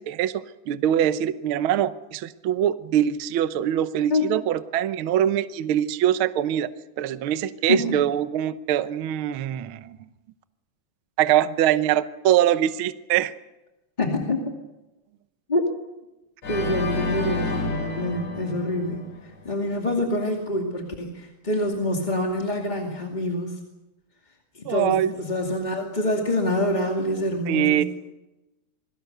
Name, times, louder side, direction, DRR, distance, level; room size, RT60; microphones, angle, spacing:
voice 1, 0.0-6.7 7.0-10.0 11.2-13.3 24.6-25.1 27.5-27.8, right 11 dB, 85° right, 12 dB, 1.1 m, -23 dB
voice 2, 14.0-14.4 15.5-15.6 16.5-23.6 24.5-27.8, left 1 dB, 15° left, 0 dB, 2.0 m, -26 dB
Organ, 16.4-19.5, left 3 dB, 65° left, 5.2 m, -30 dB
27.5 x 21.5 x 6.7 m, 1.0 s
omnidirectional pair, 3.7 m